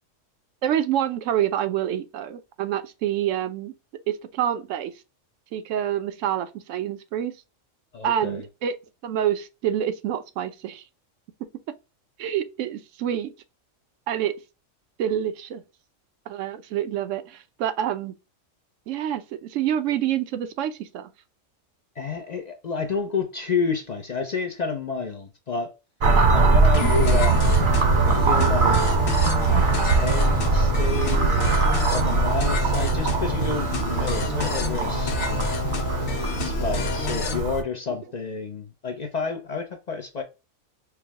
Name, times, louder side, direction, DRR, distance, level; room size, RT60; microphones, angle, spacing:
voice 1, 0.6-3.7 4.1-4.9 5.5-7.3 8.0-8.8 9.0-10.8 12.2-13.3 14.1-14.3 15.0-15.6 16.3-18.1 18.9-21.1, right 10 dB, 75° right, 0.9 m, -27 dB
voice 2, 7.9-8.5 22.0-25.7 26.3-27.5 28.1-28.8 29.5-31.3 31.9-35.5 36.4-40.2, left 5 dB, 55° left, 0.5 m, -30 dB
sound 1, 26.0-37.6, right 4 dB, 50° right, 0.7 m, -21 dB
sound 2, 26.7-37.4, left 5 dB, 90° left, 1.2 m, -29 dB
4.5 x 2.0 x 3.3 m
omnidirectional pair, 1.4 m